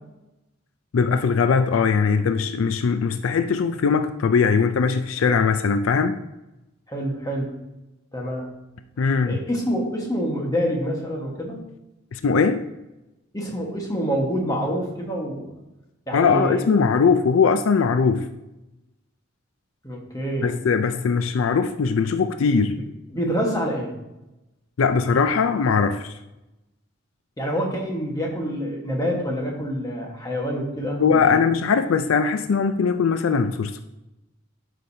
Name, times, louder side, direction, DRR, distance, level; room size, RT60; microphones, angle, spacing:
voice 1, 0.9-6.2 9.0-9.4 12.1-12.6 16.1-18.3 20.4-22.8 24.8-26.1 31.0-33.8, left 5 dB, 75° left, 0.4 m, -20 dB
voice 2, 6.9-7.6 8.1-8.5 9.2-11.6 13.3-15.5 16.1-16.7 19.8-20.6 23.1-24.0 27.4-31.4, equal, 15° left, 1.4 m, -27 dB
11.5 x 5.1 x 2.8 m
head